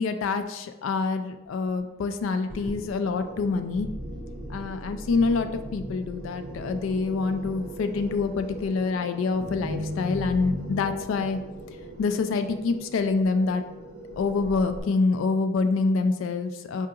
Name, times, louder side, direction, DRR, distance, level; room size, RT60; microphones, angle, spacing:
voice 1, 0.0-3.9 4.5-11.4 12.0-13.6 14.2-16.9, left 4 dB, 75° left, 8 dB, 0.3 m, -26 dB
sound 1, 2.5-14.8, equal, 70° right, 0.7 m, -38 dB
4.6 x 2.7 x 2.4 m, 1.0 s
head